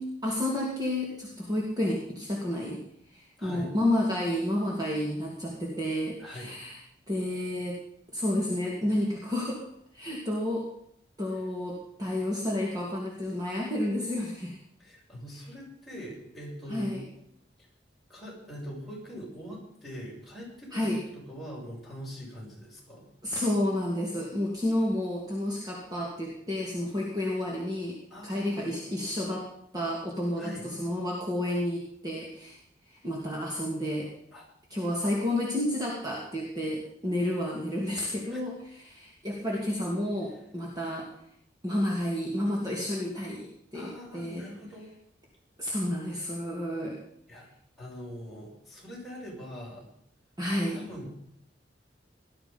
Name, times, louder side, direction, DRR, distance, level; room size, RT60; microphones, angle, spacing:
voice 1, 0.0-2.8 3.1-6.8 7.1-7.8 8.1-9.7 9.9-10.7 11.2-14.6 16.7-17.0 20.7-21.0 23.2-29.5 29.7-32.6 32.8-34.1 34.7-41.1 41.6-44.4 45.6-47.0 50.4-50.8, left 1 dB, 20° right, -3 dB, 2.7 m, -30 dB
voice 2, 3.4-3.7 6.2-6.5 14.8-17.0 18.1-23.1 28.1-29.1 30.4-30.7 34.3-34.5 38.3-38.4 43.7-44.9 47.3-47.5 47.8-49.9 50.7-51.1, equal, ahead, -4 dB, 6.9 m, -43 dB
19.0 x 13.0 x 5.5 m, 0.71 s
head